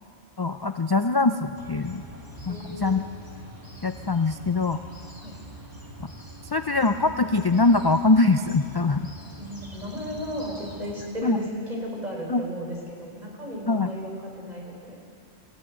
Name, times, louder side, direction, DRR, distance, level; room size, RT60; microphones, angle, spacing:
voice 1, 0.4-2.0 2.5-3.0 3.8-4.8 6.0-6.1 6.4-9.1 11.2-11.4 12.3-12.4 13.7-13.9, left 3 dB, 35° left, 8 dB, 0.4 m, -23 dB
sound 1, 1.6-10.9, right 1 dB, 20° right, 2.4 m, -44 dB
voice 2, 2.5-3.0 5.2-5.3 9.4-15.0, equal, 40° right, -2 dB, 4.8 m, -34 dB
20.5 x 15.0 x 9.0 m, 2.7 s
omnidirectional pair, 1.1 m